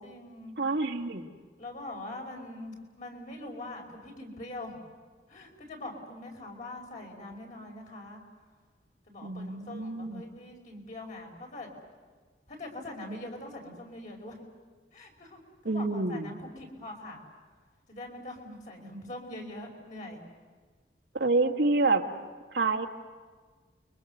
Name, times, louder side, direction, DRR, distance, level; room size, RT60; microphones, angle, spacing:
voice 1, 0.0-0.6 1.6-4.8 5.3-8.2 9.1-11.7 12.5-14.4 14.9-17.2 17.9-20.2, left 1 dB, 45° left, 1 dB, 5.3 m, -43 dB
voice 2, 0.6-1.3 9.2-10.2 15.6-16.4 21.1-22.0 22.5-22.9, right 3 dB, 85° right, 3 dB, 2.0 m, -27 dB
29.5 x 23.5 x 6.8 m, 1.5 s
head